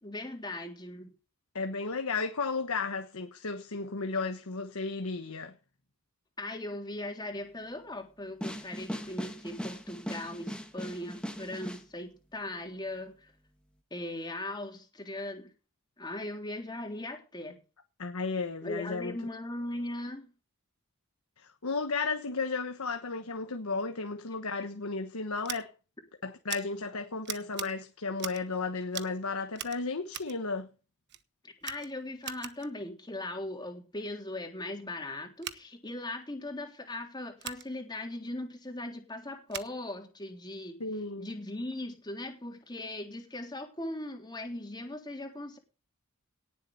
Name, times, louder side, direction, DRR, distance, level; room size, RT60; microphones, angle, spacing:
voice 1, 0.0-1.1 6.4-13.3 13.9-15.5 16.0-17.6 18.6-20.3 31.4-40.8 41.2-45.6, left 1 dB, 20° left, 3.5 m, -39 dB
voice 2, 1.5-5.5 18.0-19.1 21.4-25.7 26.2-30.7 40.8-41.3, left 4 dB, 85° left, 1.3 m, -34 dB
sound 1, 8.4-11.8, equal, 5° left, 2.1 m, -39 dB
Scissors, 25.4-25.6 26.5-26.6 27.2-27.7 28.2-28.5 28.9-29.2 29.5-30.4 31.1-31.2 31.6-32.7 35.4-35.6 37.4-37.6 39.5-39.7, right 11 dB, 55° right, 1.2 m, -41 dB
18.0 x 7.6 x 5.5 m
head